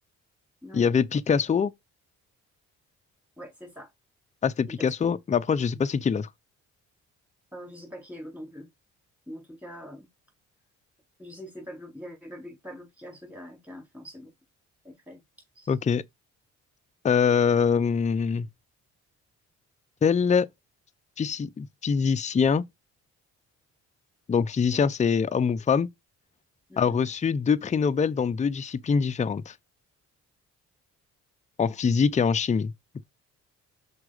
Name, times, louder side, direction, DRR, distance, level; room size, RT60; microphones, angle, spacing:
voice 1, 0.7-1.7 4.4-6.3 15.7-16.0 17.0-18.5 20.0-20.5 21.2-22.6 24.3-25.9 26.8-29.5 31.6-32.7, left 6 dB, 25° left, 0.5 m, -24 dB
voice 2, 3.4-3.9 4.7-4.9 7.5-8.7 9.3-10.1 11.2-14.3 14.8-15.2 15.6-15.7 26.7-27.0, equal, 5° right, 4.1 m, -43 dB
6.1 x 4.7 x 4.9 m
cardioid pair, 90°, 30 cm